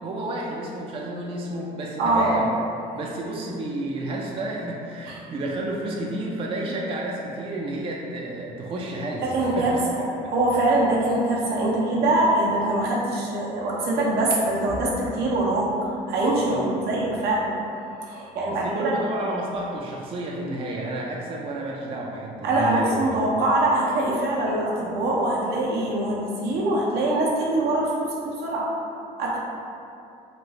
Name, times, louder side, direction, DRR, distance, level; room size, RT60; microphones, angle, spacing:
voice 1, 0.0-2.5 2.9-9.2 9.6-9.8 10.2-10.3 16.4-16.7 18.5-23.0, right 1 dB, 35° right, -2 dB, 0.3 m, -31 dB
voice 2, 2.0-2.4 5.1-5.2 9.2-10.0 10.3-17.5 18.0-18.9 22.4-28.7 29.2-29.4, right 2 dB, 75° right, -4 dB, 0.7 m, -23 dB
3.0 x 2.0 x 3.5 m, 2.6 s
cardioid pair, 110°, 17 cm